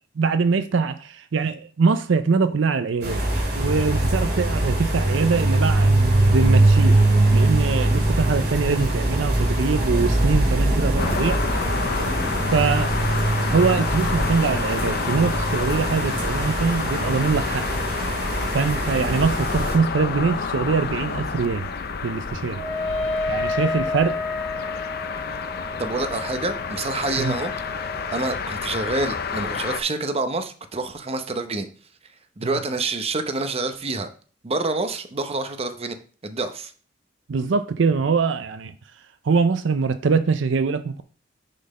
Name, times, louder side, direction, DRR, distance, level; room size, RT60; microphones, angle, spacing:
voice 1, 0.2-3.2 3.5-7.0 7.3-11.4 12.5-12.9 13.5-17.6 18.5-21.7 22.0-22.6 23.3-24.2 27.2-27.3 32.4-32.5 37.3-38.7 39.2-41.0, right 5 dB, 75° right, 0.5 m, -23 dB
sound 1, 3.0-19.7, right 1 dB, 55° right, 2.8 m, -22 dB
sound 2, 11.0-29.8, left 5 dB, 55° left, 0.6 m, -29 dB
Wind instrument woodwind instrument, 22.5-28.2, left 2 dB, 80° left, 1.4 m, -30 dB
voice 2, 25.8-27.5 28.1-31.7 32.4-34.1 34.4-36.0 36.2-36.7, right 3 dB, 35° right, 0.7 m, -27 dB
6.6 x 4.1 x 5.4 m
head